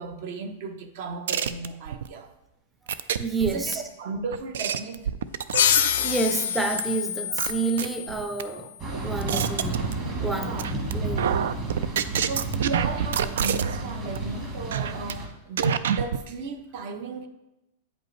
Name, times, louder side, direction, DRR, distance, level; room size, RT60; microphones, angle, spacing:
voice 1, 0.0-2.3 3.4-5.1 7.3-7.4 10.2-10.7 12.2-17.3, right 4 dB, 45° right, 8 dB, 0.6 m, -35 dB
sound 1, 1.3-2.1 2.9-3.7 4.3-6.1 6.8-6.9 7.4-8.4 8.9-10.3 10.6-10.9 11.2-13.8 14.1-14.3 14.7-15.1 15.6-16.2, right 8 dB, 85° right, 0.3 m, -27 dB
voice 2, 3.2-3.8 6.0-8.7 9.0-9.8 10.2-10.6 10.9-11.2, right 3 dB, 5° right, 6 dB, 0.5 m, -28 dB
sound 2, 5.5-8.8, left 10 dB, 75° left, 0.5 m, -26 dB
sound 3, 8.8-15.3, right 2 dB, 25° right, 1.2 m, -32 dB
8.6 x 5.2 x 3.1 m, 0.92 s
supercardioid pair, 170°, 0 cm